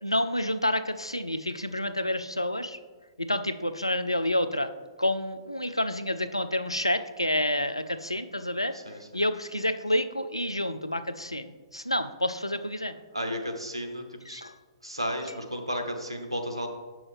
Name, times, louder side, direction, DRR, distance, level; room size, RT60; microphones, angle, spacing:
voice 1, 0.0-2.8 3.2-4.7 5.0-8.7 9.1-13.0 14.3-14.5, left 1 dB, 90° left, 10 dB, 0.4 m, -29 dB
voice 2, 8.7-9.2 13.1-14.4 14.8-16.7, equal, 85° right, 5 dB, 0.9 m, -33 dB
7.1 x 6.1 x 3.3 m, 1.4 s
figure-of-eight pair, 115°, 3 cm